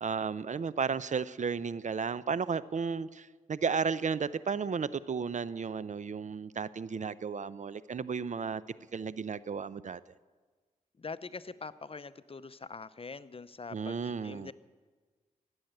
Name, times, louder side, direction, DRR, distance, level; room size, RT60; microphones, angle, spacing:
voice 1, 0.0-8.6 8.9-10.0 13.7-14.5, right 5 dB, 50° right, 17 dB, 0.5 m, -33 dB
voice 2, 11.0-14.5, left 4 dB, 40° left, 15 dB, 0.6 m, -43 dB
16.0 x 8.0 x 8.9 m, 1.4 s
cardioid pair, 45°, 16 cm